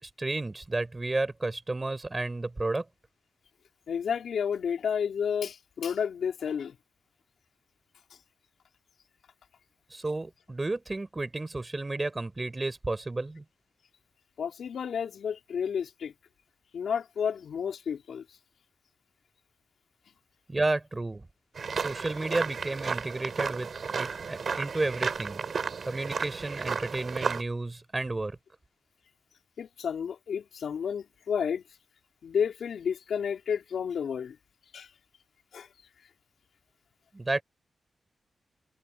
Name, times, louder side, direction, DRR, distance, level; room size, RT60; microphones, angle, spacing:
voice 1, 0.0-2.8 9.9-13.4 20.5-21.3 21.7-23.7 24.0-25.4 25.9-28.4 37.1-37.4, right 2 dB, 25° right, 5.1 m, -32 dB
voice 2, 3.9-6.8 14.4-16.1 16.7-18.2 29.6-31.6 32.2-34.4 34.7-34.9 35.5-35.7, left 7 dB, 80° left, 3.7 m, -31 dB
sound 1, 21.6-27.4, right 5 dB, 55° right, 7.2 m, -33 dB
wide cardioid pair, 105°, 0 cm